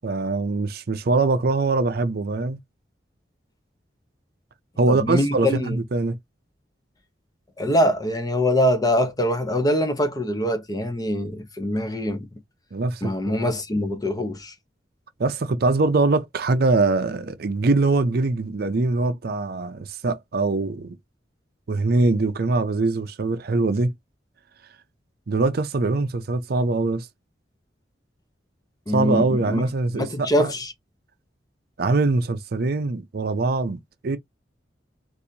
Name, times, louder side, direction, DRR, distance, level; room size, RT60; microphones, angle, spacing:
voice 1, 0.0-2.6 4.8-6.2 12.7-13.5 15.2-21.0 21.7-23.9 25.3-27.1 28.9-30.5 31.8-34.2, right 3 dB, 55° right, 0.5 m, -23 dB
voice 2, 4.9-5.8 7.6-12.3 13.0-14.5 28.9-29.6 29.9-30.7, left 1 dB, 20° left, 0.9 m, -23 dB
4.0 x 2.6 x 2.8 m
head